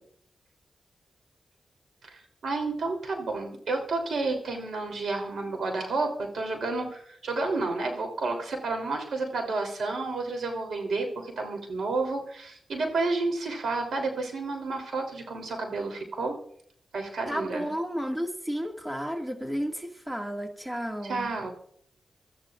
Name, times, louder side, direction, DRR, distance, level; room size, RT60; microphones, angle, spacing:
voice 1, 2.0-16.3 16.9-17.7 21.0-21.5, right 3 dB, 80° right, 3 dB, 3.3 m, -31 dB
voice 2, 17.3-21.3, equal, 10° right, 2 dB, 2.0 m, -32 dB
26.0 x 13.5 x 2.5 m, 0.64 s
cardioid pair, 60°, 0 cm